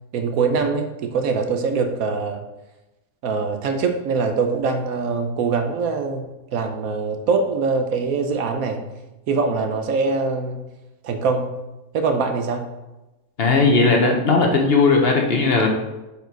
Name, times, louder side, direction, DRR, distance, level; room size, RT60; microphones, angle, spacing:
voice 1, 0.1-2.5 3.2-6.2 6.5-8.9 9.3-10.6 11.0-11.6 11.9-12.7, right 4 dB, 80° right, 6 dB, 1.2 m, -23 dB
voice 2, 13.4-15.7, left 3 dB, 45° left, 2 dB, 1.1 m, -17 dB
7.1 x 4.5 x 4.6 m, 1.0 s
omnidirectional pair, 1.5 m